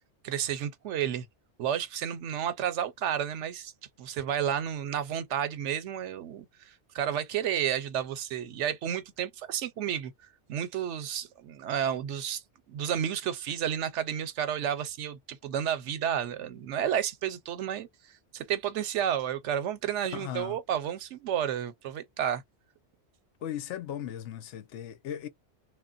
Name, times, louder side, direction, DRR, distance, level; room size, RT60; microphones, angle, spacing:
voice 1, 0.2-1.3 1.6-3.7 4.0-10.1 10.5-12.4 12.7-17.9 18.3-22.4, right 9 dB, 80° right, 0.9 m, -31 dB
voice 2, 20.1-20.6 23.4-25.3, left 10 dB, 80° left, 0.9 m, -37 dB
3.1 x 2.2 x 2.4 m
omnidirectional pair, 1.2 m